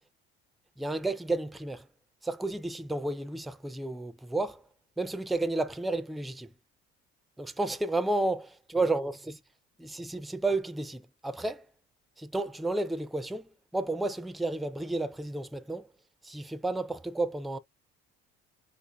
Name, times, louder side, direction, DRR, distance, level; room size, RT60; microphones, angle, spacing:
voice 1, 0.8-1.9 2.2-4.6 5.0-6.5 7.4-9.4 9.8-11.7 12.2-15.9 16.2-17.6, right 2 dB, ahead, 0.3 m, -32 dB
3.8 x 2.6 x 2.2 m
supercardioid pair, 75°, 29 cm